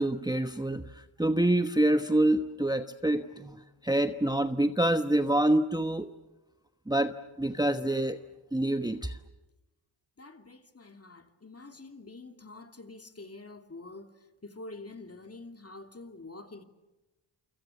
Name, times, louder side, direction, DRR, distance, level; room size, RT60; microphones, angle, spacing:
voice 1, 0.0-6.1 6.9-8.2 8.5-9.2, right 1 dB, 10° right, 1.1 m, -27 dB
voice 2, 10.2-14.1 14.4-16.6, left 2 dB, 30° left, 2.7 m, -46 dB
29.0 x 25.5 x 7.2 m
cardioid pair, 80°, 50 cm